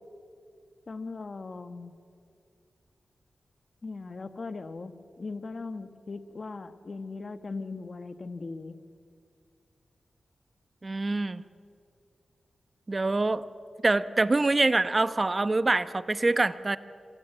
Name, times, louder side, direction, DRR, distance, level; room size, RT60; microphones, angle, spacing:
voice 1, 0.9-1.9 3.8-8.8, left 3 dB, 45° left, 9 dB, 1.4 m, -39 dB
voice 2, 10.8-11.4 12.9-13.5 13.8-16.8, right 2 dB, 30° right, 13 dB, 0.9 m, -25 dB
26.5 x 25.5 x 8.1 m, 2.4 s
wide cardioid pair, 85°, 0 cm